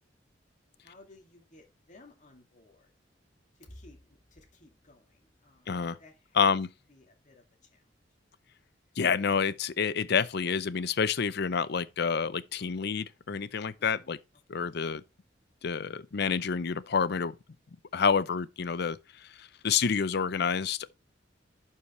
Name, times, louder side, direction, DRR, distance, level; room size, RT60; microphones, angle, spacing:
voice 1, 0.8-2.9 3.6-6.6 6.9-7.4 7.7-7.8 13.8-14.1 14.5-14.6, left 2 dB, 40° left, 2.3 m, -56 dB
voice 2, 5.7-6.0 6.4-6.7 9.0-14.2 14.5-15.0 15.6-17.3 17.9-19.0 19.4-20.9, left 6 dB, 60° left, 0.6 m, -28 dB
11.5 x 5.6 x 3.1 m
head